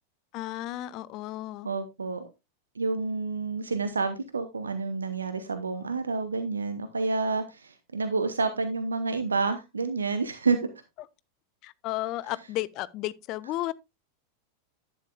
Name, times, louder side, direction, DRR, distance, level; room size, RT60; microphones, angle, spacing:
voice 1, 0.3-1.7 11.6-13.7, left 16 dB, 40° left, 0.5 m, -33 dB
voice 2, 1.6-2.3 2.7-10.7, right 4 dB, 75° right, 0.8 m, -29 dB
11.0 x 8.7 x 2.3 m
figure-of-eight pair, 90°, 0 cm